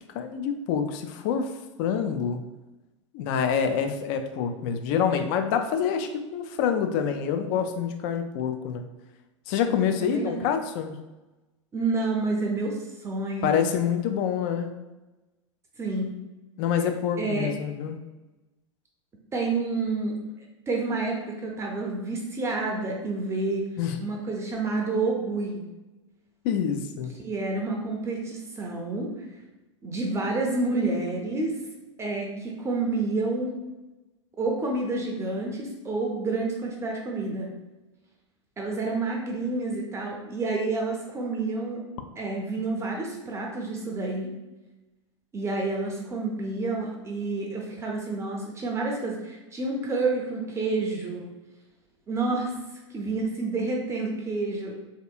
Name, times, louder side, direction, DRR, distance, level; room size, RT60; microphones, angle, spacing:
voice 1, 0.1-1.5 1.8-2.4 3.1-8.8 9.5-10.9 13.4-14.7 16.6-18.0 23.8-24.0 26.4-27.1, left 7 dB, 40° left, 7 dB, 0.4 m, -26 dB
voice 2, 9.9-10.3 11.7-13.7 15.8-16.1 17.2-17.5 19.3-20.2 20.7-23.7 24.0-25.6 27.2-29.1 29.8-31.6 32.0-33.5 34.4-37.5 38.6-41.8 42.2-44.3 45.3-51.3 52.1-52.5 52.9-54.9, right 3 dB, 15° right, -1 dB, 0.5 m, -29 dB
3.2 x 2.8 x 2.3 m, 1.1 s
figure-of-eight pair, 90°, 16 cm